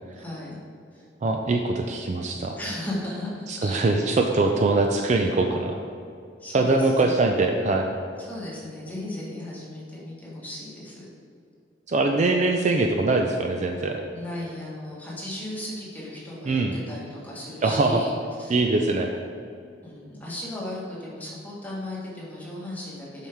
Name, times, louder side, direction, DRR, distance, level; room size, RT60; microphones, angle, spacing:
voice 1, 0.2-0.6 0.9-1.0 2.6-4.1 6.4-7.1 8.2-11.1 14.1-18.1 18.4-18.6 19.8-23.3, left 1 dB, 10° left, -6 dB, 1.5 m, -36 dB
voice 2, 1.2-2.6 3.5-5.8 6.5-7.9 11.9-14.0 16.5-16.7 17.6-18.0 18.5-19.1, right 3 dB, 40° right, 3 dB, 0.4 m, -22 dB
7.5 x 5.7 x 3.6 m, 2.4 s
head